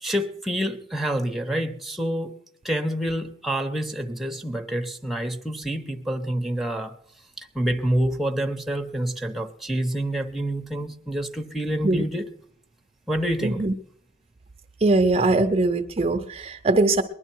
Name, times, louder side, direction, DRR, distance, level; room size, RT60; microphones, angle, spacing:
voice 1, 0.0-2.3 2.6-6.9 7.4-12.3 13.1-13.6, right 1 dB, ahead, 0.8 m, -27 dB
voice 2, 13.4-13.7 14.8-17.0, right 2 dB, 30° right, 0.5 m, -21 dB
20.0 x 11.0 x 4.5 m
head